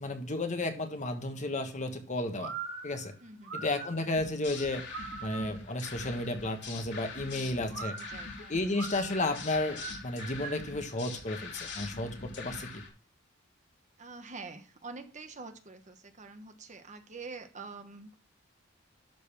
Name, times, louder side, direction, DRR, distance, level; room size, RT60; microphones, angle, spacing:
voice 1, 0.0-2.5 2.8-3.1 3.5-4.8 5.2-7.9 8.5-12.8, left 2 dB, 40° left, 6 dB, 1.4 m, -33 dB
sound 1, 2.4-5.7 7.7-10.8, right 4 dB, 70° right, 3.1 m, -42 dB
voice 2, 3.2-4.1 7.2-8.8 14.0-18.2, right 3 dB, 40° right, 8 dB, 1.1 m, -47 dB
sound 2, 4.2-12.9, left 4 dB, 60° left, 2.6 m, -44 dB
12.0 x 4.1 x 7.0 m, 0.38 s
head